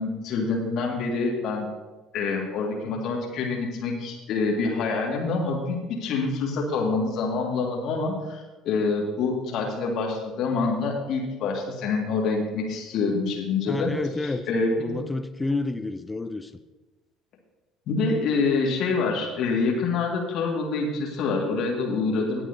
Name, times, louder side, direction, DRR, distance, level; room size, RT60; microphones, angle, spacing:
voice 1, 0.0-1.7 2.1-14.9 17.9-22.4, left 4 dB, 55° left, -1 dB, 1.9 m, -26 dB
voice 2, 13.7-14.4 14.8-16.5, left 3 dB, 15° left, 10 dB, 0.6 m, -29 dB
19.0 x 8.3 x 2.7 m, 1.2 s
figure-of-eight pair, 60°, 0 cm